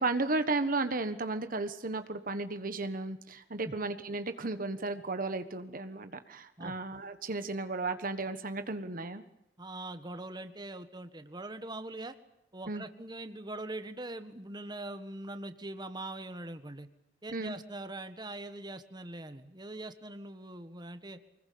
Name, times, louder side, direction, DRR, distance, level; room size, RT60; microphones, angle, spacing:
voice 1, 0.0-9.2 12.7-12.8 17.3-17.6, right 3 dB, 50° right, 10 dB, 1.4 m, -34 dB
voice 2, 9.6-12.2 12.5-16.9 17.2-21.2, right 2 dB, 25° right, 9 dB, 1.6 m, -42 dB
25.0 x 20.5 x 8.7 m, 0.81 s
head